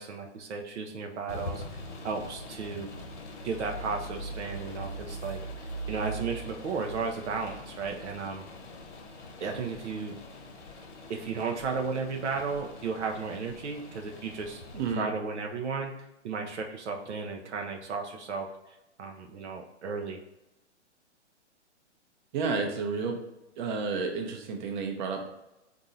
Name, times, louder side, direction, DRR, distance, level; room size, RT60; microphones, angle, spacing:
voice 1, 0.0-1.6 2.0-2.9 3.4-5.4 5.9-8.5 9.4-10.2 11.1-14.6 14.9-20.2, right 5 dB, 75° right, 2 dB, 0.7 m, -34 dB
sound 1, 1.3-14.9, equal, 70° left, 1.1 m, -42 dB
voice 2, 14.7-15.1 22.3-23.2 23.6-25.3, right 4 dB, 40° right, 3 dB, 0.8 m, -31 dB
4.0 x 2.6 x 4.2 m, 0.95 s
hypercardioid pair, 130°, 36 cm